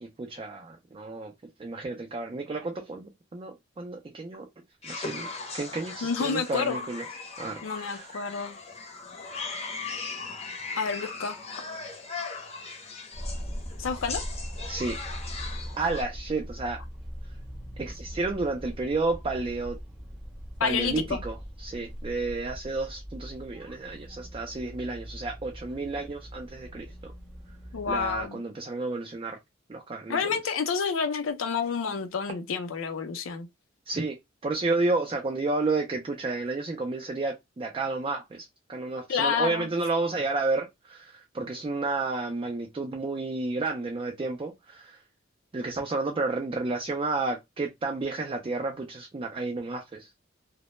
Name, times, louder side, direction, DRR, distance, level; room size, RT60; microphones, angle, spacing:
voice 1, 0.0-1.3 1.6-4.5 4.8-7.1 7.4-8.2 14.7-15.0 15.8-16.8 17.8-19.8 20.6-27.1 27.9-29.4 29.7-30.5 33.9-45.0 45.5-50.1, right 3 dB, 25° right, 0.3 m, -31 dB
sound 1, 4.8-16.0, left 4 dB, 30° left, 0.6 m, -38 dB
voice 2, 6.0-6.8 7.6-8.6 10.8-11.4 13.8-14.2 20.6-21.2 27.7-28.4 30.1-33.5 39.1-39.7, left 6 dB, 90° left, 0.5 m, -29 dB
sound 2, 13.1-28.3, equal, 5° right, 0.7 m, -41 dB
2.1 x 2.0 x 2.9 m
head